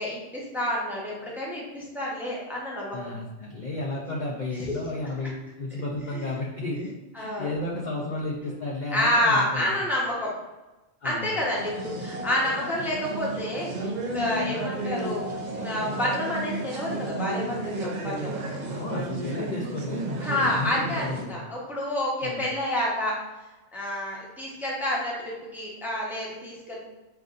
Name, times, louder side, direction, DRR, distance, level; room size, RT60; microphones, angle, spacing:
voice 1, 0.0-3.0 6.1-6.3 7.1-7.6 8.9-10.3 11.0-15.2 15.6-18.4 20.2-23.1 23.7-26.8, left 1 dB, ahead, -4 dB, 0.7 m, -29 dB
voice 2, 2.9-5.3 5.6-6.9 7.2-9.7 11.0-11.4 18.7-20.1 20.4-21.3 22.2-22.4, left 2 dB, 50° left, -3 dB, 0.5 m, -33 dB
sound 1, 11.6-21.2, right 2 dB, 55° right, 0.5 m, -33 dB
5.8 x 2.6 x 2.4 m, 1.1 s
omnidirectional pair, 1.3 m